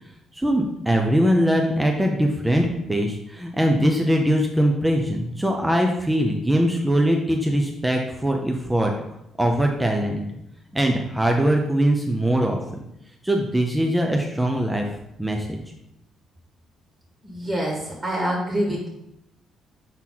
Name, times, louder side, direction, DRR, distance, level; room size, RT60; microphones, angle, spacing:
voice 1, 0.3-8.9 9.4-10.3 10.7-12.6 13.2-14.8 15.2-15.6, equal, 10° right, 1 dB, 0.8 m, -21 dB
voice 2, 17.2-18.9, equal, 35° right, -2 dB, 2.0 m, -26 dB
6.1 x 4.2 x 3.9 m, 0.82 s
hypercardioid pair, 50°, 0 cm